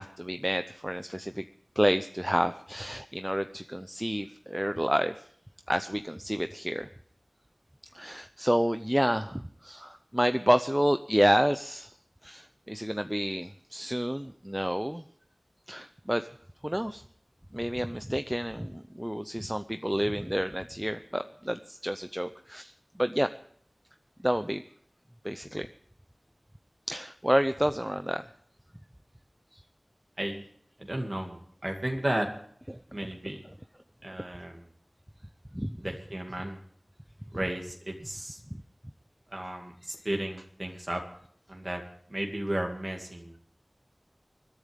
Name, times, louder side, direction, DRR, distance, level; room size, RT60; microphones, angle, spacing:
voice 1, 0.0-1.4 1.8-5.2 5.7-6.9 7.9-11.9 12.2-15.0 15.7-16.3 16.6-17.0 17.5-22.7 23.0-23.3 24.2-24.6 25.2-25.7 26.9-28.2 35.5-35.8, equal, 10° right, 10 dB, 0.6 m, -29 dB
voice 2, 30.9-32.3 32.9-33.4 34.0-34.7 35.8-36.6 37.3-38.4 39.3-41.0 41.5-41.8 42.1-43.4, right 1 dB, 40° right, 1 dB, 2.3 m, -34 dB
25.5 x 10.5 x 3.5 m, 0.62 s
wide cardioid pair, 45°, 0 cm